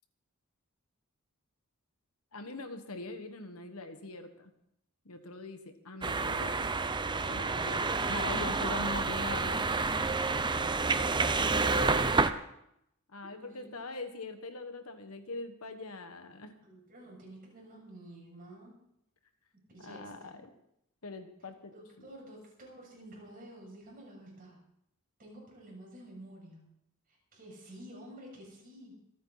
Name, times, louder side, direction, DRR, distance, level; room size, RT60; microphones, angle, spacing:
voice 1, 2.3-4.5 5.0-6.7 7.2-9.6 13.1-16.5 19.8-20.5 21.0-22.1, left 2 dB, 75° left, 7 dB, 1.6 m, -42 dB
sound 1, 6.0-12.3, right 3 dB, 20° right, 0.6 m, -29 dB
voice 2, 13.3-13.8 16.6-18.7 19.7-20.3 21.7-24.6 25.2-26.7 27.1-28.9, right 1 dB, 40° right, -3 dB, 6.9 m, -50 dB
25.5 x 9.5 x 4.1 m, 0.77 s
head